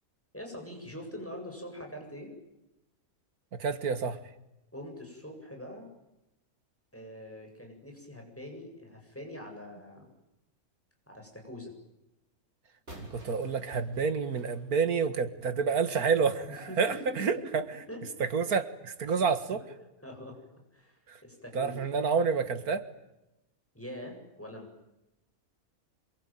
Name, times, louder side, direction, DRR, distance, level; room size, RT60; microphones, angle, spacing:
voice 1, 0.3-2.3 4.7-5.9 6.9-10.1 11.1-11.7 16.5-17.5 17.9-18.1 19.5-20.4 20.7-21.8 23.7-24.7, left 1 dB, 10° left, 2 dB, 7.9 m, -44 dB
voice 2, 3.6-4.2 13.1-17.6 18.3-19.6 21.1-21.2 21.5-22.8, right 5 dB, 85° right, 11 dB, 2.2 m, -28 dB
sound 1, 12.9-15.6, right 1 dB, 45° right, 7.6 m, -50 dB
27.0 x 23.5 x 9.2 m, 0.92 s
omnidirectional pair, 1.5 m